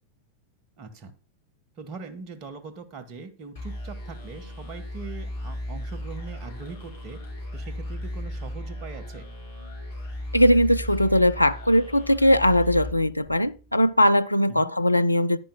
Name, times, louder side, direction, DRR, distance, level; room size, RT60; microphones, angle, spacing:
voice 1, 0.8-1.1 1.8-7.2 7.5-9.3 14.5-14.7, right 5 dB, 40° right, 1.5 m, -41 dB
sound 1, 3.6-13.9, left 1 dB, 55° left, 5.3 m, -36 dB
voice 2, 10.3-15.4, equal, 85° left, 0.4 m, -20 dB
14.0 x 10.5 x 2.2 m
figure-of-eight pair, 90°, 0 cm